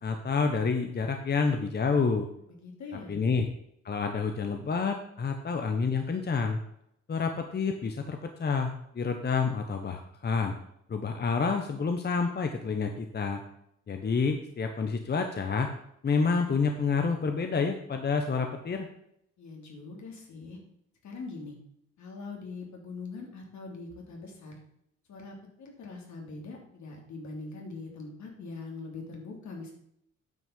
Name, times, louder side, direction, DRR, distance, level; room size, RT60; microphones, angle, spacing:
voice 1, 0.0-2.3 3.1-3.4 3.8-6.6 7.1-10.5 10.9-13.4 13.9-15.7 16.0-18.9, left 5 dB, 35° left, 5 dB, 1.0 m, -28 dB
voice 2, 2.5-3.1 19.4-20.6 21.0-21.6 22.0-24.6 25.1-29.7, left 3 dB, 70° left, 1 dB, 3.1 m, -42 dB
9.3 x 6.1 x 5.4 m, 0.74 s
cardioid pair, 90°, 30 cm